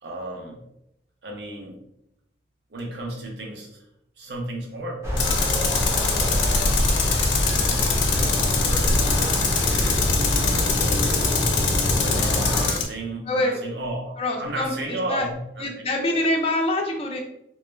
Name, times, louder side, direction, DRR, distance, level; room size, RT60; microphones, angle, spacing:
voice 1, 0.0-0.6 1.2-1.8 2.7-3.8 4.2-7.3 8.1-8.4 8.7-11.3 11.9-15.7 16.1-16.2, right 1 dB, 65° right, 0 dB, 0.6 m, -35 dB
sound 1, 5.0-12.7, left 1 dB, 15° right, 0.6 m, -24 dB
Tools, 5.2-12.9, left 5 dB, 90° left, 0.5 m, -24 dB
voice 2, 13.3-13.6 14.2-15.3 15.6-17.2, left 1 dB, 30° left, 1 dB, 0.4 m, -25 dB
2.2 x 2.0 x 3.1 m, 0.81 s
head